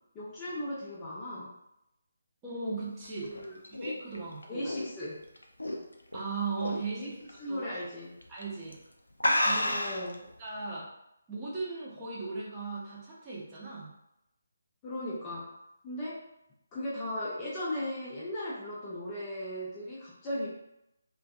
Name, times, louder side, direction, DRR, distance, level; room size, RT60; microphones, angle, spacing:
voice 1, 0.1-1.5 3.2-3.6 4.5-5.2 7.0-7.1 7.4-8.2 9.6-10.3 14.8-15.5 15.8-16.2 16.7-20.5, left 1 dB, 20° left, -7 dB, 0.4 m, -37 dB
voice 2, 2.4-3.3 3.7-4.7 6.1-7.2 7.5-7.6 8.3-8.8 9.4-9.8 10.4-10.9 11.3-13.9, right 4 dB, 15° right, -7 dB, 0.7 m, -37 dB
sound 1, 3.1-6.2 6.6-6.9 7.3-7.4 8.2-8.4 8.7-8.8 9.2-10.1, left 1 dB, 75° left, 0.4 m, -30 dB
2.5 x 2.2 x 2.4 m, 0.85 s
figure-of-eight pair, 150°, 0 cm